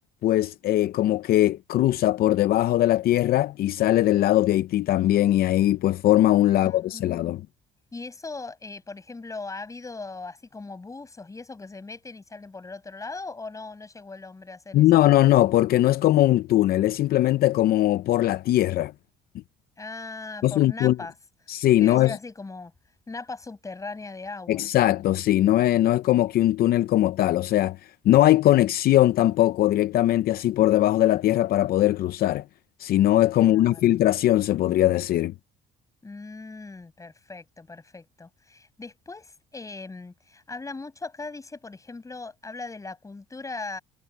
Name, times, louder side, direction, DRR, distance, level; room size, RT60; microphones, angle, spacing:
voice 1, 0.2-7.4 14.7-18.9 20.4-21.0 21.5-22.2 24.5-27.8 28.0-32.4 32.8-35.3, left 14 dB, 65° left, 0.6 m, -20 dB
voice 2, 6.5-7.2 7.9-15.0 19.8-21.1 21.8-22.7 23.1-24.6 33.4-33.9 36.0-43.8, left 3 dB, 20° left, 6.0 m, -39 dB
cardioid pair, 110°, 17 cm